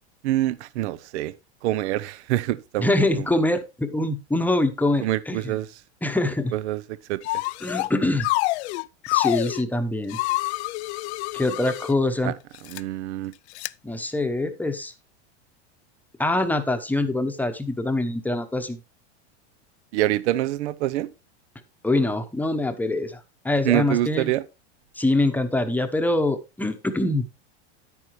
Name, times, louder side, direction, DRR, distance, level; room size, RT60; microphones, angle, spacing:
voice 1, 0.2-1.3 1.6-2.9 3.2-3.3 5.0-5.7 6.5-6.8 7.1-7.2 12.2-12.3 12.7-13.3 19.9-21.1 23.6-24.4, right 14 dB, 75° right, 0.7 m, -25 dB
voice 2, 2.8-5.6 6.0-6.5 7.6-8.3 9.1-10.2 11.3-12.3 13.8-14.9 16.2-18.8 21.8-24.3 25.0-27.3, left 2 dB, 5° left, 0.9 m, -24 dB
sound 1, 7.2-7.9 8.2-9.6 10.1-11.9 12.5-12.8 13.5-13.7, left 21 dB, 70° left, 0.5 m, -27 dB
10.0 x 8.9 x 3.1 m
supercardioid pair, 125°, 34 cm